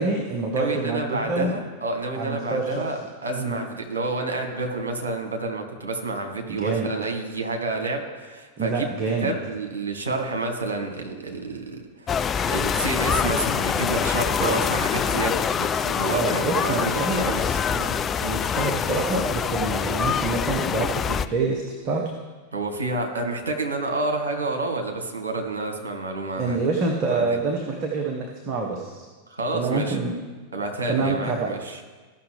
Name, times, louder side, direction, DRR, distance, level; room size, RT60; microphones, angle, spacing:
voice 1, 0.0-1.5 2.1-2.8 3.3-3.6 6.5-6.9 8.6-9.3 14.4-14.6 16.1-17.3 17.7-22.0 26.4-29.0 29.5-30.1 30.9-31.5, right 3 dB, 40° right, 1 dB, 1.0 m, -26 dB
voice 2, 0.5-8.9 9.2-17.4 22.5-26.6 27.1-27.4 29.3-30.0 30.5-31.8, right 2 dB, 70° right, 3 dB, 1.4 m, -29 dB
sound 1, 12.1-21.3, left 7 dB, 25° left, 0.3 m, -25 dB
15.5 x 5.7 x 3.4 m, 1.4 s
figure-of-eight pair, 90°, 0 cm